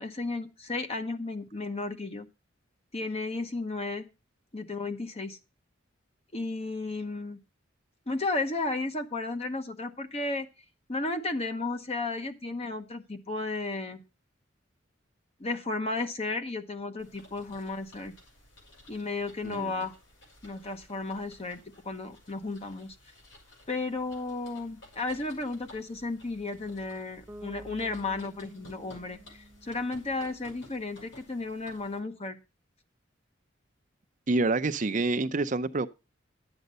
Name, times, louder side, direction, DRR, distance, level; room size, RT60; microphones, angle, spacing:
voice 1, 0.0-2.3 2.9-4.1 4.5-5.4 6.3-7.4 8.1-10.5 10.9-14.0 15.4-18.1 18.9-19.9 20.4-23.0 23.7-32.4, left 3 dB, 35° left, 1.0 m, -34 dB
sound 1, 17.0-32.0, left 1 dB, 80° left, 5.9 m, -55 dB
Bass guitar, 27.3-31.1, equal, 15° right, 0.9 m, -51 dB
voice 2, 34.3-35.9, right 3 dB, 40° right, 0.6 m, -27 dB
11.0 x 8.0 x 5.4 m
head